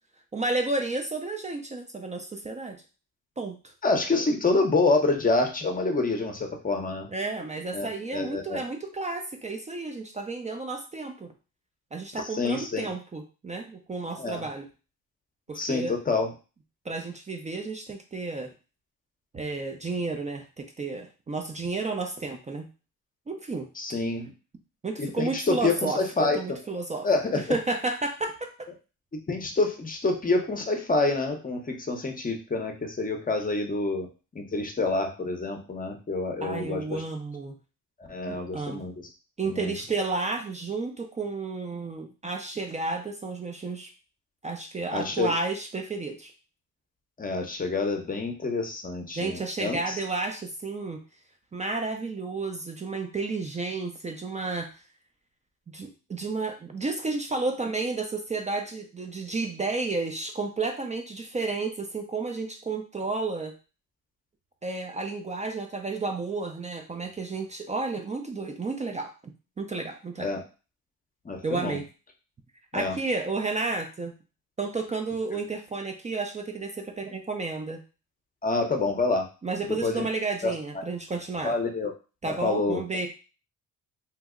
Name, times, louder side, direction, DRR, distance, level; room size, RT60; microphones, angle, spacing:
voice 1, 0.3-2.8 3.4-3.7 7.1-11.3 11.9-14.7 15.5-15.9 16.9-18.5 19.3-22.7 23.3-23.7 24.8-27.1 27.3-28.5 36.4-37.6 38.3-38.8 39.4-43.9 44.4-46.3 49.1-51.0 51.5-54.7 55.7-63.5 64.6-69.1 69.6-70.3 71.4-71.8 72.7-74.1 74.6-77.8 79.4-81.6 82.2-83.1, right 3 dB, 20° right, 4 dB, 0.4 m, -32 dB
voice 2, 3.8-7.1 7.7-8.6 12.1-12.9 14.2-14.4 15.5-16.3 23.8-24.3 25.0-26.4 27.0-27.4 29.3-34.1 34.3-37.0 38.1-38.9 39.5-39.7 44.9-45.3 47.2-50.0 70.2-70.4 71.2-71.8 72.7-72.9 78.4-79.2 79.6-80.1 80.4-80.5 81.4-81.9 82.3-82.8, left 3 dB, 25° left, 3 dB, 0.6 m, -27 dB
2.8 x 2.0 x 3.6 m, 0.34 s
cardioid pair, 100°, 33 cm